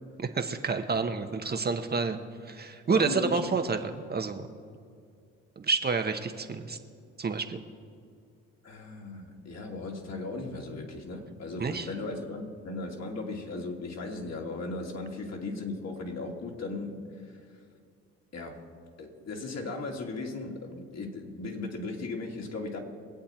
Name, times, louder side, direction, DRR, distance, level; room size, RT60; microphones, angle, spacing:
voice 1, 0.2-4.5 5.6-6.8 7.2-7.6 11.6-11.9, right 4 dB, 30° right, 6 dB, 1.1 m, -29 dB
voice 2, 2.9-3.5 8.6-17.3 18.3-18.7 19.0-22.8, left 3 dB, 50° left, 1 dB, 2.7 m, -37 dB
23.5 x 8.3 x 4.4 m, 2.3 s
supercardioid pair, 65°, 32 cm